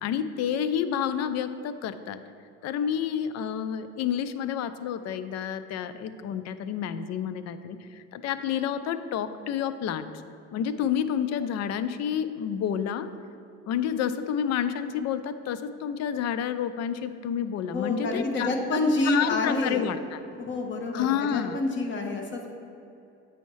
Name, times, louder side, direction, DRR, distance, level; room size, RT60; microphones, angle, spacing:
voice 1, 0.0-2.2 2.6-10.1 10.5-13.1 13.7-20.2 20.9-21.6, left 8 dB, 55° left, 12 dB, 0.5 m, -29 dB
voice 2, 17.7-19.9 20.3-22.5, left 2 dB, 35° left, 2 dB, 1.1 m, -28 dB
8.2 x 5.6 x 3.1 m, 2.7 s
supercardioid pair, 85°, 32 cm